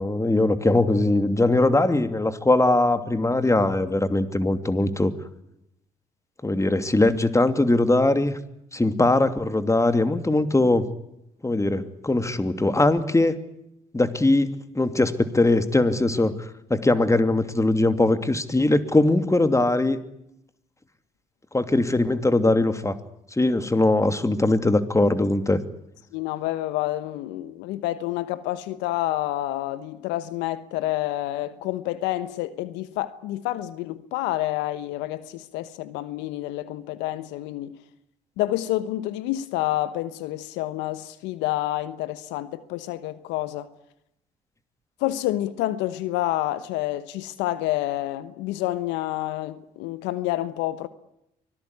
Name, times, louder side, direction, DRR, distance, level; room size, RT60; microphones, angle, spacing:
voice 1, 0.0-5.1 6.4-8.4 8.7-10.8 11.4-13.4 13.9-16.3 16.7-20.0 21.5-23.0 23.4-25.6, left 2 dB, 15° left, 2.8 m, -21 dB
voice 2, 26.1-37.8 38.4-43.7 45.0-50.9, left 15 dB, 80° left, 1.2 m, -28 dB
24.5 x 19.0 x 9.8 m
hypercardioid pair, 50°, 18 cm